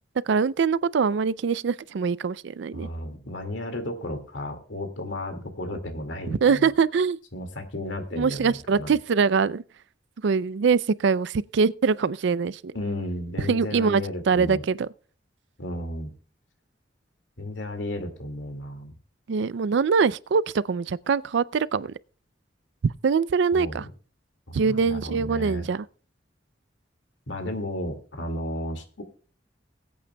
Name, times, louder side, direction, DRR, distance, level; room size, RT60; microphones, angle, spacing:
voice 1, 0.3-2.9 6.3-7.2 8.2-9.6 10.2-12.7 13.5-14.0 14.3-14.9 19.3-21.9 22.8-23.8 24.5-25.9, right 5 dB, 65° right, 0.4 m, -23 dB
voice 2, 2.7-6.7 7.3-9.0 12.7-14.6 15.6-16.1 17.4-18.9 23.5-23.8 24.5-25.7 27.3-29.0, left 1 dB, 75° left, 2.1 m, -33 dB
21.5 x 8.5 x 2.2 m
head